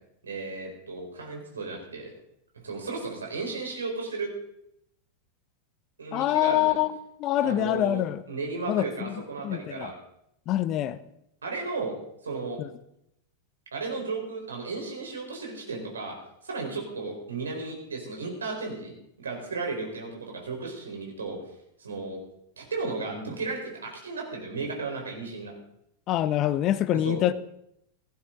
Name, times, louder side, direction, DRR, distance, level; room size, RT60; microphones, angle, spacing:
voice 1, 0.2-2.1 2.6-4.3 6.0-6.8 7.4-9.9 11.4-11.9 12.2-12.6 13.7-16.2 16.4-18.9 19.2-21.4 21.8-22.2 22.6-25.5 27.0-27.2, right 3 dB, 70° right, 1 dB, 4.5 m, -34 dB
voice 2, 6.1-6.9 7.2-8.2 8.7-9.1 9.4-9.9 10.5-11.0 12.6-12.7 26.1-27.3, left 13 dB, 35° left, 16 dB, 0.7 m, -25 dB
17.0 x 14.5 x 4.0 m, 0.78 s
figure-of-eight pair, 90°, 0 cm